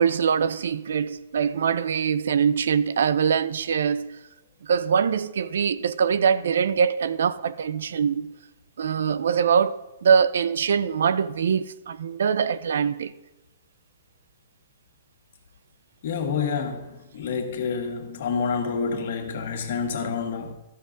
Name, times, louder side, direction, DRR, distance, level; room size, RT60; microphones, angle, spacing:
voice 1, 0.0-4.2 4.6-8.3 8.8-13.1, right 7 dB, 75° right, 0.4 m, -23 dB
voice 2, 16.0-20.5, left 5 dB, 55° left, 1.5 m, -28 dB
13.0 x 6.1 x 3.9 m
hypercardioid pair, 150°, 0 cm